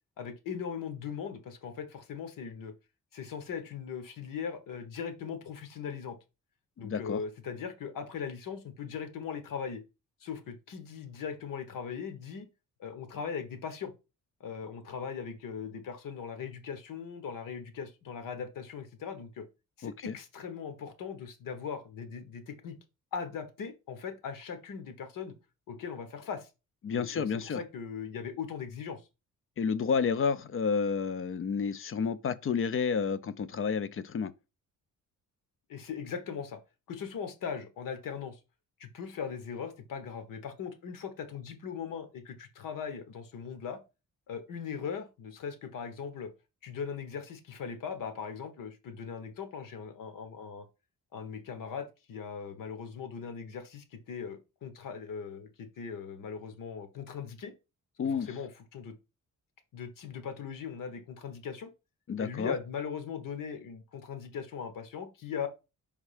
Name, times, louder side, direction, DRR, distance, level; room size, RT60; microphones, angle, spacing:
voice 1, 0.2-2.7 3.1-6.2 6.8-9.8 10.2-12.5 12.8-13.9 14.4-19.4 19.8-22.8 23.1-25.3 25.7-26.5 26.9-29.0 35.7-36.6 36.9-38.4 38.8-43.8 44.3-46.3 46.6-50.6 51.1-57.5 58.0-58.9 59.7-61.7 62.2-65.5, left 6 dB, 85° left, 1.2 m, -39 dB
voice 2, 6.8-7.2 19.8-20.1 26.8-27.6 29.6-34.3 58.0-58.3 62.1-62.5, left 6 dB, 40° left, 0.5 m, -30 dB
5.4 x 3.6 x 4.9 m
cardioid pair, 130°, 32 cm